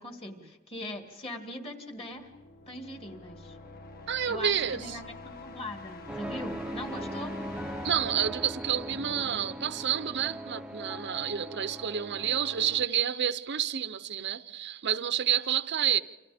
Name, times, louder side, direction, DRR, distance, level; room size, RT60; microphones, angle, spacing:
voice 1, 0.0-2.3 2.7-3.6 4.3-7.4, left 1 dB, 30° left, 2.3 m, -41 dB
sound 1, 2.0-9.7, left 3 dB, 45° left, 1.7 m, -47 dB
voice 2, 4.1-5.0 7.8-16.0, right 9 dB, 55° right, 0.7 m, -29 dB
sound 2, 6.1-12.8, equal, 5° right, 0.7 m, -40 dB
29.0 x 26.5 x 3.5 m
head